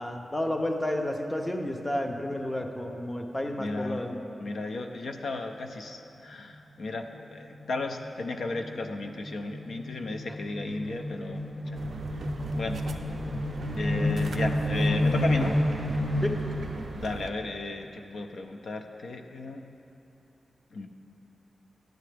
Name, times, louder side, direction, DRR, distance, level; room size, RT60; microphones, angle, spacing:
voice 1, 0.0-4.2 16.2-16.3, left 1 dB, 10° left, 4 dB, 0.5 m, -31 dB
voice 2, 3.6-4.0 4.4-11.8 12.6-12.8 13.8-15.6 16.9-19.7 20.7-20.9, left 2 dB, 70° left, 4 dB, 0.5 m, -34 dB
sound 1, 6.1-6.5 6.8-6.9 7.2-16.9, left 1 dB, 35° left, 2.0 m, -30 dB
sound 2, 11.7-17.3, right 3 dB, 65° right, 0.4 m, -39 dB
10.5 x 7.7 x 3.3 m, 2.9 s
wide cardioid pair, 180°, 0 cm